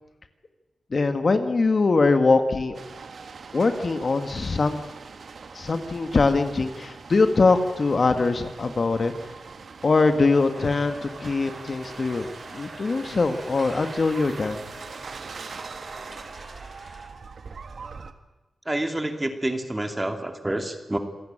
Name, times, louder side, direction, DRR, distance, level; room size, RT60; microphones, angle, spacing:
voice 1, 0.9-2.8 3.5-4.8 5.5-9.1 9.8-12.3 12.5-14.6, left 3 dB, 45° left, 8 dB, 1.7 m, -22 dB
sound 1, 2.7-18.1, right 5 dB, 65° right, 1.6 m, -42 dB
sound 2, 10.5-17.1, right 2 dB, 35° right, 4.5 m, -43 dB
voice 2, 18.7-21.0, right 1 dB, 15° right, 6 dB, 2.5 m, -28 dB
27.0 x 17.0 x 8.9 m, 1.1 s
wide cardioid pair, 115°, 0 cm